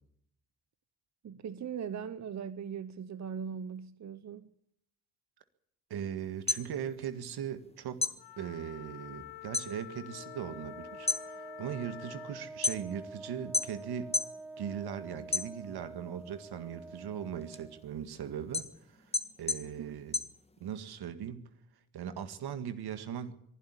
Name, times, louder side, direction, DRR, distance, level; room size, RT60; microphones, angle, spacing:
voice 1, 1.2-4.5 19.6-20.0, right 7 dB, 45° right, 0.9 m, -40 dB
voice 2, 5.9-14.1 14.6-20.2 20.6-21.5 21.9-23.3, right 8 dB, 70° right, 1.9 m, -39 dB
sound 1, 6.3-7.7 8.0-9.7 10.1-10.5 10.9-13.1 13.5-14.4 14.8-16.0 16.4-20.9, left 3 dB, 15° left, 1.6 m, -34 dB
Wind instrument woodwind instrument, 8.2-12.5, left 17 dB, 90° left, 0.9 m, -48 dB
Wind instrument woodwind instrument 2, 10.1-17.9, right 3 dB, 5° right, 0.9 m, -47 dB
23.0 x 11.5 x 9.9 m
cardioid pair, 85°, 40 cm